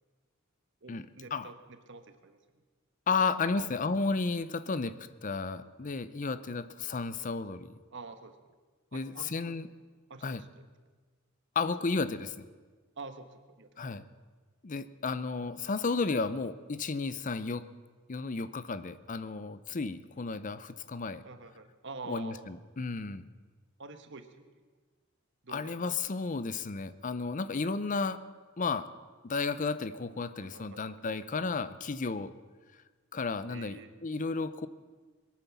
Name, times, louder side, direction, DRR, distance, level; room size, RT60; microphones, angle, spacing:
voice 1, 0.8-2.4 3.2-3.8 7.9-8.4 8.9-9.6 10.1-10.7 13.0-13.7 21.2-22.5 23.8-24.5 25.4-26.0 30.4-31.0 33.5-33.9, right 3 dB, 60° right, 9 dB, 1.3 m, -47 dB
voice 2, 3.1-5.0 5.2-7.7 8.9-9.7 10.2-10.4 11.6-12.5 13.8-14.0 14.6-17.7 18.1-21.2 22.1-23.2 25.5-28.2 28.6-28.9 29.2-32.3 33.1-34.7, left 4 dB, 40° left, 14 dB, 0.6 m, -33 dB
22.0 x 9.2 x 7.1 m, 1.4 s
head